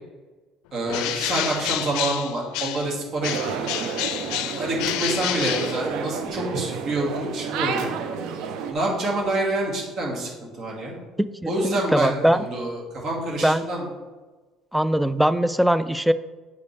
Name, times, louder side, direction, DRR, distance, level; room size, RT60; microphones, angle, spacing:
voice 1, 0.7-3.6 4.4-7.9 8.7-10.9 11.5-13.9, right 2 dB, 50° right, -1 dB, 2.1 m, -27 dB
Bird, 0.9-2.9 3.2-6.3, left 13 dB, 85° left, 0.4 m, -29 dB
sound 1, 3.2-8.7, right 6 dB, 75° right, 0.6 m, -30 dB
voice 2, 11.2-12.4 13.4-13.6 14.7-16.1, equal, ahead, 14 dB, 0.3 m, -21 dB
7.9 x 5.3 x 3.3 m, 1.2 s
cardioid pair, 120°, 0 cm